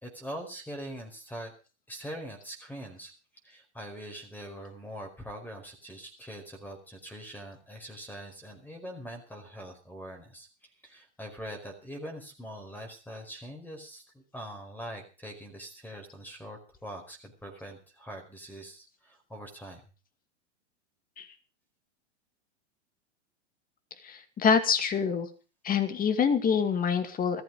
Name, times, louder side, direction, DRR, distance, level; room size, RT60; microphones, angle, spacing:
voice 1, 0.0-1.5 1.9-3.1 3.4-19.8, equal, 5° left, 4 dB, 4.8 m, -43 dB
voice 2, 24.0-25.3 25.6-27.4, left 6 dB, 25° left, 11 dB, 2.3 m, -26 dB
15.0 x 14.0 x 5.1 m, 0.34 s
hypercardioid pair, 110°, 35 cm